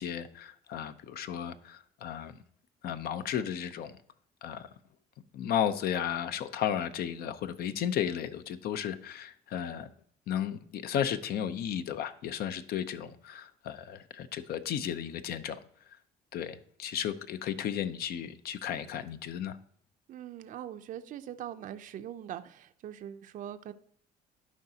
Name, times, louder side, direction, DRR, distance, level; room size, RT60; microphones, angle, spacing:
voice 1, 0.0-2.4 2.8-3.9 4.4-4.7 5.3-9.9 10.3-15.6 16.3-19.6, left 9 dB, 65° left, 0.6 m, -34 dB
voice 2, 20.1-23.7, right 10 dB, 50° right, 0.5 m, -42 dB
11.5 x 4.9 x 2.8 m
cardioid pair, 110°, 17 cm